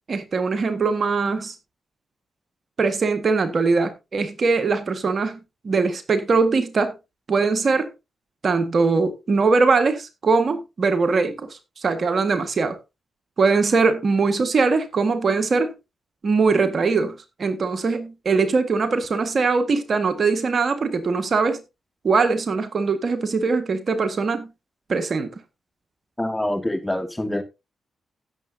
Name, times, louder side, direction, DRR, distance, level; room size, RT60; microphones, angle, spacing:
voice 1, 0.1-1.5 2.8-5.4 5.6-6.9 7.3-7.9 8.4-12.8 13.4-15.7 16.2-21.6 22.0-24.5 24.9-25.3, right 4 dB, 55° right, 1.6 m, -21 dB
voice 2, 26.2-27.4, left 1 dB, 10° left, 2.0 m, -25 dB
16.5 x 7.2 x 2.7 m
supercardioid pair, 45°, 0 cm